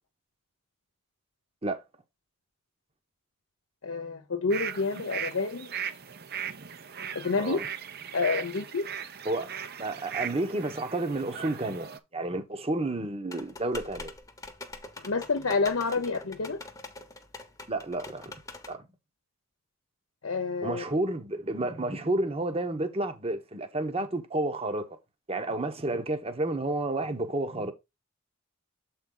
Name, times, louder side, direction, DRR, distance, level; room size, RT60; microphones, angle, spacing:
voice 1, 3.8-5.7 7.1-7.6 8.1-8.9 15.0-16.6 20.2-20.8, left 4 dB, 75° left, 0.8 m, -28 dB
sound 1, 4.5-12.0, right 8 dB, 50° right, 0.7 m, -38 dB
voice 2, 9.8-14.1 17.7-18.3 18.7-18.9 20.6-24.9 25.3-27.7, right 2 dB, 30° right, 1.0 m, -31 dB
sound 2, 13.3-18.8, left 2 dB, 15° left, 1.0 m, -44 dB
7.4 x 4.5 x 3.8 m
head